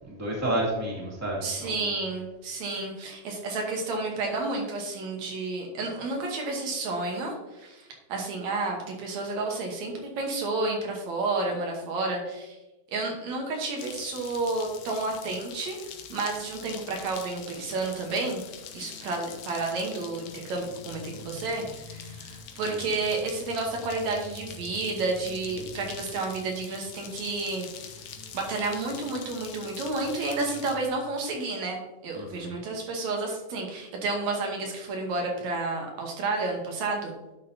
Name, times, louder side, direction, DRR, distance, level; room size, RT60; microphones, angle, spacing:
voice 1, 0.0-1.9 22.7-22.8 32.1-32.5, right 1 dB, 5° right, -5 dB, 2.0 m, -31 dB
voice 2, 1.4-12.6 12.9-15.8 16.1-18.4 18.7-27.7 28.0-37.1, right 3 dB, 75° right, 1 dB, 2.4 m, -31 dB
sound 1, 13.8-30.8, left 8 dB, 70° left, 2.0 m, -45 dB
sound 2, 16.6-30.9, left 1 dB, 55° left, 2.2 m, -49 dB
10.5 x 6.4 x 2.8 m, 1.0 s
omnidirectional pair, 3.3 m